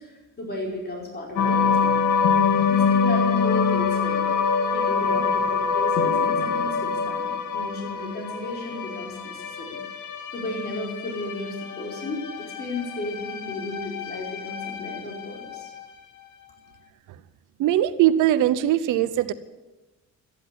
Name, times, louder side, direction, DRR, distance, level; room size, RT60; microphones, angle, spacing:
voice 1, 0.0-2.3 2.5-4.3 4.7-9.8 10.3-15.7, left 2 dB, 35° left, -2 dB, 5.0 m, -34 dB
sound 1, 1.4-15.8, left 5 dB, 80° left, 1.8 m, -25 dB
voice 2, 17.6-19.3, right 12 dB, 90° right, 13 dB, 0.8 m, -20 dB
13.5 x 10.5 x 9.9 m, 1.1 s
cardioid pair, 90°, 30 cm